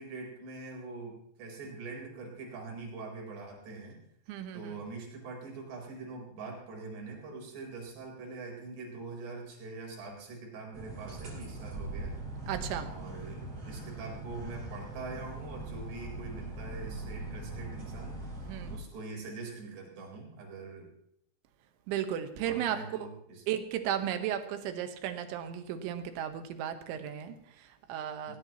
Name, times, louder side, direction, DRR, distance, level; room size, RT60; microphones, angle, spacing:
voice 1, 0.0-4.0 4.5-12.1 12.8-18.2 18.7-20.9 22.5-23.4 28.3-28.4, right 3 dB, 55° right, -1 dB, 5.9 m, -43 dB
voice 2, 4.3-4.8 12.5-12.9 18.4-18.8 21.9-22.8 23.5-28.4, right 10 dB, 75° right, 8 dB, 3.3 m, -35 dB
sound 1, 10.7-18.8, right 2 dB, 30° right, 5.1 m, -41 dB
19.5 x 18.0 x 3.0 m, 0.72 s
omnidirectional pair, 5.9 m